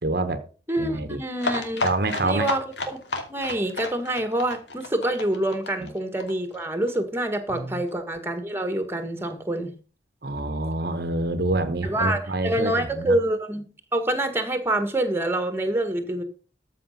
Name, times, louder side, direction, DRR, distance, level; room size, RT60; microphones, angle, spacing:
voice 1, 0.0-0.4 0.8-1.2 1.8-2.5 7.5-7.8 10.2-13.1, right 2 dB, 55° right, 1.1 m, -27 dB
voice 2, 0.7-1.8 2.2-3.0 3.3-9.7 11.8-16.2, right 1 dB, 15° right, 1.8 m, -26 dB
sound 1, 1.4-7.0 7.2-7.3 7.6-7.7 7.9-8.0, left 3 dB, 75° left, 2.6 m, -32 dB
14.0 x 6.2 x 5.7 m
head